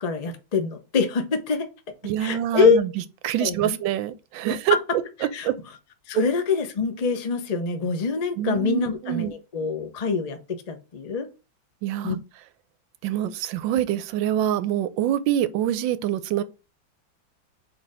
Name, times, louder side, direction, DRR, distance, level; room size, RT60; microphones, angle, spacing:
voice 1, 0.0-1.7 2.2-2.8 3.4-3.8 4.5-4.6 5.3-5.5 6.1-11.3 12.0-12.2, left 5 dB, 55° left, 0.4 m, -25 dB
voice 2, 2.0-2.9 3.2-5.5 8.4-9.3 11.8-12.2 13.0-16.4, right 11 dB, 80° right, 1.3 m, -25 dB
4.5 x 4.4 x 4.8 m
omnidirectional pair, 2.1 m